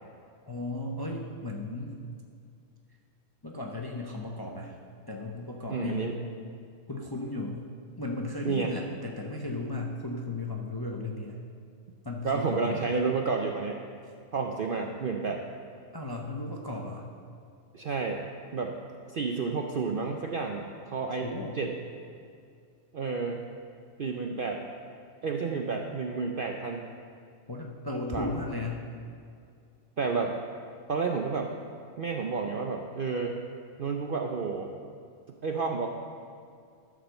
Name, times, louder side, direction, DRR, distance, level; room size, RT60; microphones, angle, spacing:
voice 1, 0.5-2.0 3.4-4.8 5.1-6.1 6.9-7.6 8.0-11.4 12.0-12.9 15.9-17.1 21.2-21.6 27.5-28.9, left 2 dB, 25° left, 0 dB, 0.6 m, -35 dB
voice 2, 5.7-6.2 8.4-8.7 12.2-13.8 14.3-15.4 17.7-18.2 18.5-18.7 19.1-21.3 21.6-21.7 22.9-23.4 24.0-24.6 25.2-26.9 28.1-28.3 30.0-30.3 30.9-31.5 32.0-33.3 33.8-34.7 35.4-35.9, right 4 dB, 55° right, 2 dB, 0.6 m, -30 dB
12.5 x 5.0 x 6.5 m, 2.3 s
omnidirectional pair, 1.5 m